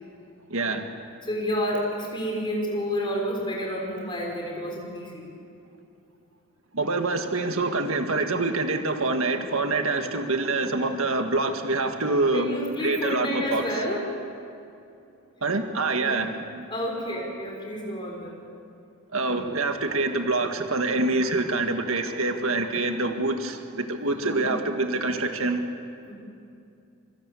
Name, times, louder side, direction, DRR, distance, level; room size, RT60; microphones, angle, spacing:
voice 1, 0.5-0.9 6.7-12.5 12.8-13.6 15.4-16.3 19.1-25.6, right 3 dB, 65° right, 5 dB, 1.8 m, -26 dB
voice 2, 1.2-5.3 12.3-14.1 15.6-15.7 16.0-16.3 16.7-18.4 24.2-24.5 26.1-26.2, equal, 20° left, -1 dB, 6.1 m, -30 dB
26.0 x 24.5 x 8.4 m, 2.6 s
head